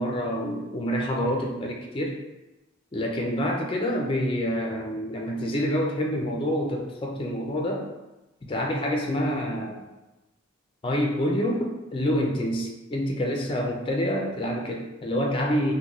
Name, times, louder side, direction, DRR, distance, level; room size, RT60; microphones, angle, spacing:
voice 1, 0.0-2.2 2.9-7.9 8.5-9.8 10.8-15.7, equal, 25° left, 0 dB, 0.4 m, -27 dB
3.0 x 2.1 x 3.8 m, 1.0 s
head